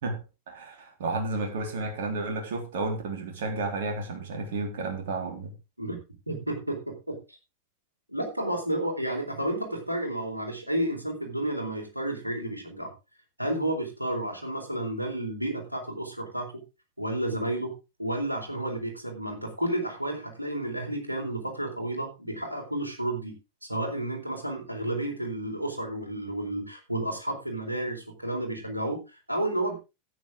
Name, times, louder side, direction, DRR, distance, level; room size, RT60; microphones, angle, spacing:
voice 1, 0.5-5.5, right 3 dB, 55° right, 3 dB, 3.8 m, -32 dB
voice 2, 6.3-7.4 8.1-12.9 13.4-16.5 17.0-17.7 18.0-23.3 23.7-29.0 29.3-29.7, right 1 dB, 85° right, 2 dB, 3.9 m, -31 dB
13.0 x 9.6 x 3.7 m, 0.27 s
figure-of-eight pair, 90°, 0 cm